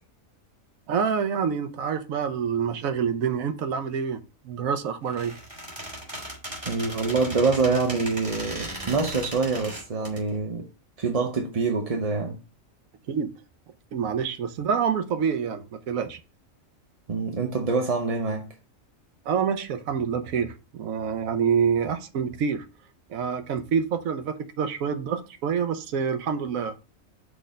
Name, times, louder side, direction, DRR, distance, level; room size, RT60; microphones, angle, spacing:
voice 1, 0.9-5.3 13.1-13.3 13.9-16.2 19.3-22.7 23.1-26.8, right 7 dB, 80° right, 1.2 m, -27 dB
Squeak, 5.0-10.2, right 1 dB, 20° right, 2.7 m, -37 dB
voice 2, 6.6-10.7 11.0-12.4 17.1-18.5, right 4 dB, 35° right, 0.7 m, -25 dB
6.2 x 3.3 x 5.0 m
omnidirectional pair, 1.4 m